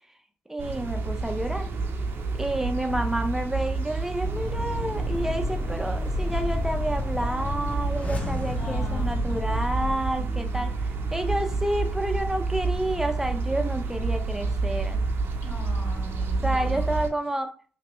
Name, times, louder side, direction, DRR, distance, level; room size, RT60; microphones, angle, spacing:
voice 1, 0.5-1.7 2.3-10.7 11.1-15.0 16.4-17.5, right 1 dB, 10° right, 6 dB, 0.5 m, -29 dB
sound 1, 0.6-17.1, right 3 dB, 65° right, 0.6 m, -29 dB
sound 2, 4.2-9.9, left 2 dB, 30° left, 0.7 m, -31 dB
voice 2, 8.6-9.5 10.1-10.7 15.4-16.8, left 1 dB, 70° left, -2 dB, 1.5 m, -41 dB
3.0 x 2.9 x 3.0 m, 0.40 s
supercardioid pair, 45°, 4 cm